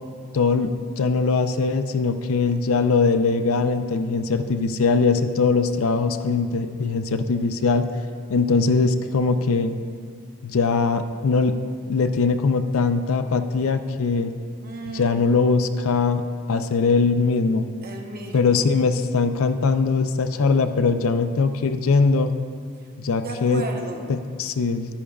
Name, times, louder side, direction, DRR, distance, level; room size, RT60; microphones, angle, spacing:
voice 1, 0.3-7.9 8.3-9.7 10.4-11.5 11.9-14.3 14.9-16.2 16.5-17.7 18.3-22.3 23.0-23.6 24.1-24.9, left 4 dB, 75° left, 9 dB, 0.5 m, -21 dB
voice 2, 14.6-15.2 17.8-18.6 23.2-24.0, right 2 dB, 45° right, 2 dB, 0.8 m, -34 dB
11.5 x 9.9 x 2.4 m, 2.1 s
head